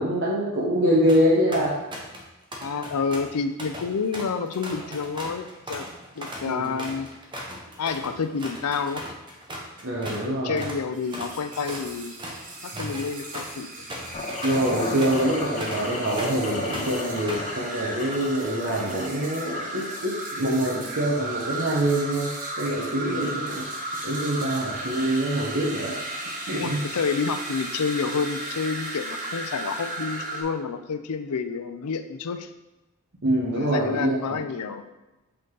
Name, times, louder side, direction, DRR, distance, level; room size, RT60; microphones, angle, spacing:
voice 1, 0.0-1.7 6.5-6.8 9.8-10.6 12.7-13.0 14.4-23.7 24.0-26.0 26.5-26.8 33.2-34.2, right 1 dB, 55° right, -6 dB, 1.1 m, -25 dB
sound 1, 1.1-1.2 1.5-2.2 2.5-10.3 10.6-10.8 11.1-16.4 16.7-17.5, equal, 20° right, 0.9 m, -38 dB
voice 2, 2.6-5.9 6.2-7.1 7.8-9.1 10.3-12.1 12.6-13.7 23.1-23.4 26.5-32.5 33.5-34.9, left 5 dB, 90° left, 9 dB, 0.5 m, -29 dB
sound 2, 10.9-30.4, right 2 dB, 35° right, 1.1 m, -35 dB
sound 3, 14.1-20.1, left 2 dB, 30° left, 0.5 m, -34 dB
7.9 x 3.9 x 3.8 m, 1.1 s
head